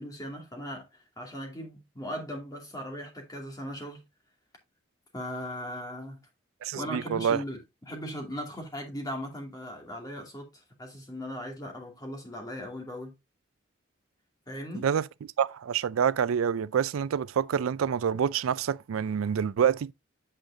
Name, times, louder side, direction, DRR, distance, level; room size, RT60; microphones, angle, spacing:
voice 1, 0.0-4.0 5.1-6.2 6.7-13.1 14.5-14.9, equal, 20° left, 2.5 m, -38 dB
voice 2, 6.6-7.4 14.8-15.0 15.4-19.9, right 8 dB, 90° right, 0.4 m, -27 dB
8.7 x 6.3 x 2.7 m
head